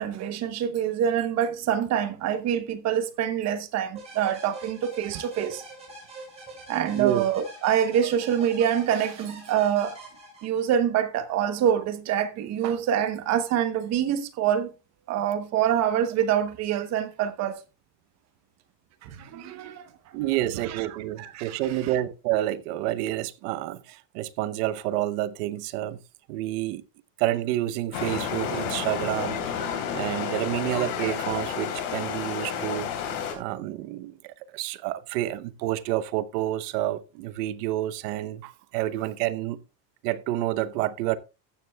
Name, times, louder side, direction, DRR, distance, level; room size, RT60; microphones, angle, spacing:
voice 1, 0.0-5.6 6.7-10.0 10.4-14.7 15.1-17.6 19.0-19.8 20.7-20.8 21.2-21.6, right 9 dB, 35° right, 0.9 m, -26 dB
sound 1, 3.9-10.8, right 2 dB, 15° right, 6.4 m, -44 dB
voice 2, 6.9-7.2 20.1-26.0 26.3-26.8 27.2-32.9 33.3-39.6 40.0-41.2, right 14 dB, 75° right, 1.0 m, -29 dB
sound 2, 27.9-33.3, left 7 dB, 55° left, 3.2 m, -31 dB
15.0 x 9.5 x 2.2 m
cardioid pair, 180°, 46 cm